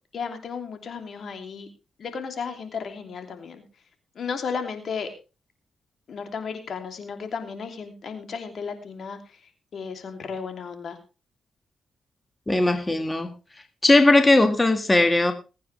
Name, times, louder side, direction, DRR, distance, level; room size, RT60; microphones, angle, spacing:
voice 1, 0.1-1.7 2.0-3.6 4.1-5.1 6.1-9.4 9.7-11.0, left 5 dB, 65° left, 7 dB, 2.9 m, -34 dB
voice 2, 12.5-13.3 13.8-15.3, left 2 dB, 20° left, 7 dB, 2.0 m, -18 dB
20.5 x 9.3 x 3.4 m, 0.31 s
cardioid pair, 70°, 0 cm